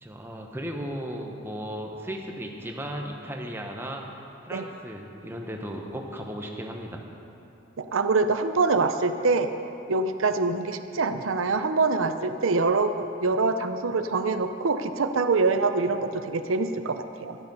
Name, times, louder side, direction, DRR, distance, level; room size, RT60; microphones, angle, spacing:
voice 1, 0.0-7.0, equal, 10° right, 1 dB, 1.1 m, -36 dB
voice 2, 7.8-9.5 9.9-17.4, right 3 dB, 85° right, 9 dB, 0.6 m, -25 dB
12.0 x 12.0 x 5.5 m, 2.9 s
head